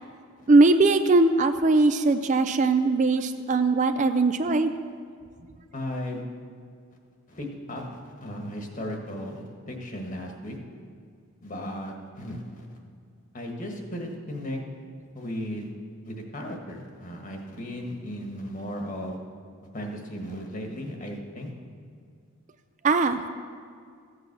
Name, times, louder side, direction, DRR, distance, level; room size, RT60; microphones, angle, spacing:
voice 1, 0.5-4.7 22.8-23.3, right 3 dB, 35° right, 9 dB, 0.4 m, -20 dB
voice 2, 5.7-6.2 7.3-10.6 11.4-12.8 13.3-14.6 15.1-15.7 16.0-19.2 19.7-21.5, equal, 40° left, 2 dB, 1.6 m, -36 dB
14.5 x 8.2 x 6.1 m, 2.2 s
head